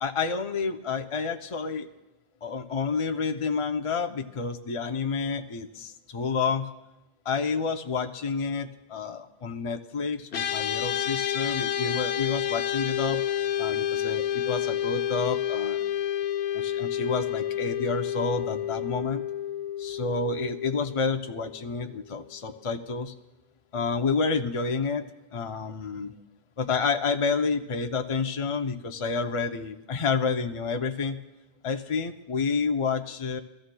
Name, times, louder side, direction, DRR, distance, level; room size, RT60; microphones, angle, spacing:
voice 1, 0.0-1.9 2.4-6.7 7.3-13.2 13.6-15.8 16.5-19.2 19.8-23.1 23.7-26.1 26.6-31.2 31.6-33.4, left 4 dB, 40° left, 5 dB, 0.5 m, -29 dB
sound 1, 10.3-21.8, left 10 dB, 80° left, 0.9 m, -29 dB
24.0 x 14.5 x 2.2 m, 1.0 s
omnidirectional pair, 1.1 m